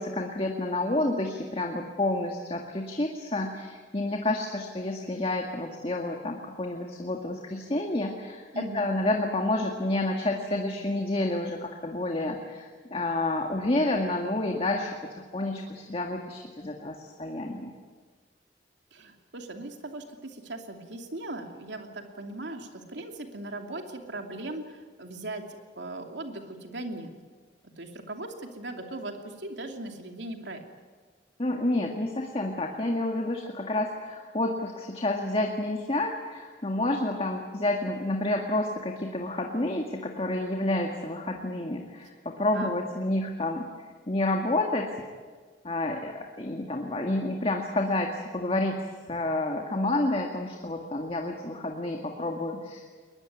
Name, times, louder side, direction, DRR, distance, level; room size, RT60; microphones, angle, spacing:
voice 1, 0.0-17.7 31.4-43.7 44.1-44.9 45.6-52.9, left 2 dB, 35° left, 2 dB, 1.9 m, -29 dB
voice 2, 8.5-8.9 18.9-25.5 25.8-27.1 27.8-30.6 42.5-42.7, right 2 dB, 85° right, 4 dB, 2.7 m, -38 dB
22.0 x 20.5 x 9.5 m, 1.5 s
head